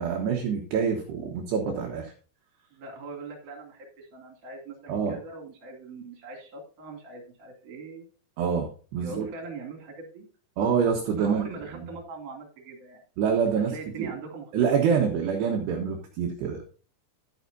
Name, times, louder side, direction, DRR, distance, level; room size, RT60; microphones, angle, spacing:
voice 1, 0.0-2.1 4.9-5.1 8.4-9.3 10.6-11.5 13.2-13.7 14.0-14.1 14.5-16.6, right 6 dB, 70° right, 1 dB, 3.0 m, -26 dB
voice 2, 2.7-8.0 9.0-10.3 11.2-13.0 13.7-14.7, right 3 dB, 45° right, 2 dB, 3.4 m, -41 dB
11.5 x 10.0 x 2.7 m, 0.38 s
omnidirectional pair, 5.7 m